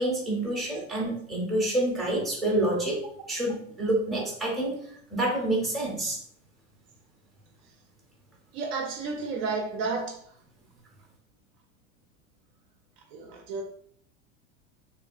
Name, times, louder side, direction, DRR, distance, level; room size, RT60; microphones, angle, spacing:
voice 1, 0.0-3.0 3.3-4.8 5.1-6.2, right 1 dB, ahead, 0.6 m, -27 dB
voice 2, 8.5-10.2 13.1-13.6, right 4 dB, 50° right, 0.5 m, -31 dB
3.0 x 2.4 x 2.4 m
supercardioid pair, 135°, 41 cm